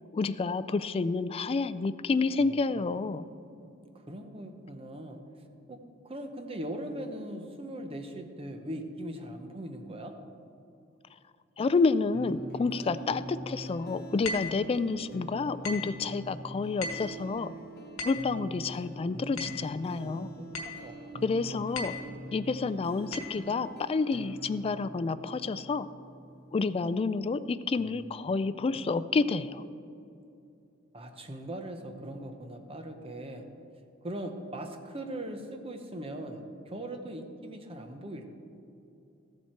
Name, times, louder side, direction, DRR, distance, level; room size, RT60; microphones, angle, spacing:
voice 1, 0.1-3.3 11.6-17.5 18.0-20.3 21.2-21.9 22.3-25.9 26.5-29.6, left 4 dB, 30° left, 13 dB, 0.3 m, -29 dB
voice 2, 2.7-3.2 3.5-3.7 4.1-5.2 5.7-5.8 6.0-10.2 19.0-20.5 20.8-21.6 22.0-22.3 27.8-28.1 28.7-29.0 30.9-33.5 34.0-38.3, right 1 dB, 30° right, 5 dB, 0.9 m, -40 dB
sound 1, 12.1-27.1, equal, 50° left, 0.9 m, -44 dB
sound 2, 14.2-14.6 15.6-16.0 16.8-17.2 18.0-18.3 19.4-19.7 20.5-20.9 21.7-22.1 23.1-23.4, left 3 dB, 75° left, 1.3 m, -37 dB
14.0 x 7.4 x 4.5 m, 2.7 s
head